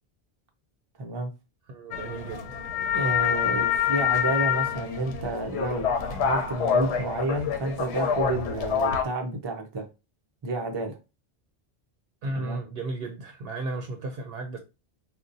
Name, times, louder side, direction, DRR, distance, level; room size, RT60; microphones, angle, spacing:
voice 1, 1.0-1.3 2.9-9.9 10.4-11.0 12.4-12.6, right 2 dB, 40° right, 0.4 m, -30 dB
voice 2, 1.7-2.6 12.2-14.6, right 2 dB, 65° right, 0.7 m, -34 dB
sound 1, 1.9-9.0, left 7 dB, 80° left, 0.9 m, -27 dB
3.8 x 2.1 x 2.5 m
omnidirectional pair, 1.1 m